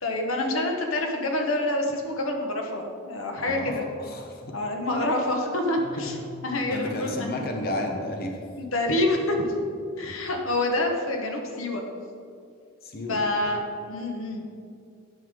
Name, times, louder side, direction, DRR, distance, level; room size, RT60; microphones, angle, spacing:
voice 1, 0.0-3.8 4.5-6.2 6.4-7.4 8.6-9.5 10.0-11.8 13.1-14.4, left 1 dB, 80° left, 2 dB, 1.2 m, -27 dB
voice 2, 3.4-3.7 4.0-4.6 5.8-6.2 6.7-8.4 10.0-10.1 12.8-13.2, left 1 dB, 50° left, 2 dB, 0.9 m, -32 dB
11.0 x 5.7 x 3.7 m, 2.3 s
head